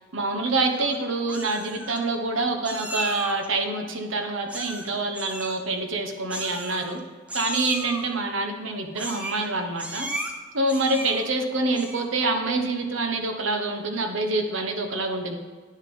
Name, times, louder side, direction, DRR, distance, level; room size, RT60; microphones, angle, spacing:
voice 1, 0.1-7.0 7.3-10.1 10.5-15.4, right 2 dB, 75° right, 5 dB, 1.1 m, -26 dB
Meow, 0.5-1.0 1.3-2.0 2.6-3.5 4.5-4.9 5.1-5.6 6.3-7.0 7.3-8.0 8.9-9.5 9.8-10.3 10.7-11.3 11.7-12.1, right 1 dB, 5° right, 0.7 m, -35 dB
9.9 x 6.6 x 5.4 m, 1.5 s
head